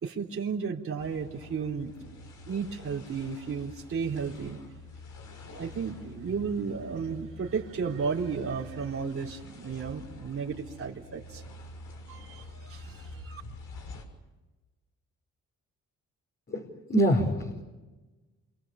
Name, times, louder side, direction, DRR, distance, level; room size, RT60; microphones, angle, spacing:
voice 1, 0.0-4.6 5.5-11.4 12.1-13.4, right 5 dB, 45° right, -2 dB, 3.7 m, -34 dB
sound 1, 1.0-14.0, left 2 dB, 75° left, 6.7 m, -47 dB
voice 2, 16.5-17.6, right 1 dB, 35° left, 1 dB, 4.9 m, -26 dB
28.0 x 26.5 x 7.2 m, 1.2 s
cardioid pair, 90°, 30 cm